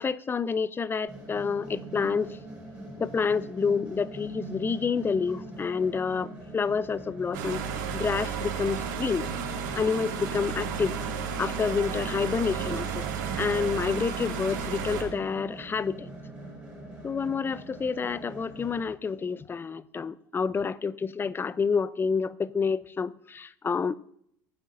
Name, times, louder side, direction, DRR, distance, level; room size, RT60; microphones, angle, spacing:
voice 1, 0.0-2.4 3.0-7.6 7.9-9.3 9.8-11.0 11.4-13.1 13.4-16.1 17.0-23.9, left 5 dB, 20° left, 0.6 m, -28 dB
sound 1, 1.1-18.8, right 2 dB, 10° right, 5.7 m, -42 dB
sound 2, 7.3-15.0, right 7 dB, 70° right, 2.5 m, -33 dB
23.0 x 8.6 x 2.6 m
hypercardioid pair, 75°, 11 cm